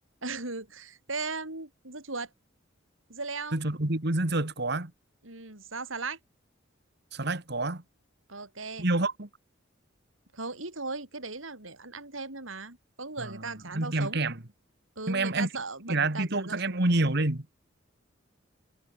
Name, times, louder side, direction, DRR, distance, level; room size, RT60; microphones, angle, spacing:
voice 1, 0.2-2.3 3.1-3.6 5.2-6.2 8.3-8.9 10.3-14.2 15.0-16.8, right 3 dB, 85° right, 6.8 m, -37 dB
voice 2, 3.5-4.9 7.1-7.8 8.8-9.3 13.2-13.3 13.7-14.3 15.1-15.5 15.9-17.5, right 2 dB, 55° right, 2.3 m, -27 dB
head